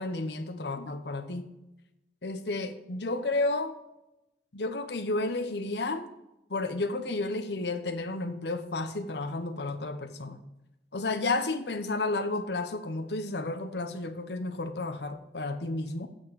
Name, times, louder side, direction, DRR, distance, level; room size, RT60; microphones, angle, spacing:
voice 1, 0.0-1.5 2.2-3.7 4.5-6.1 6.5-10.4 10.9-16.1, left 2 dB, 70° left, 0.9 m, -32 dB
8.7 x 6.4 x 5.8 m
head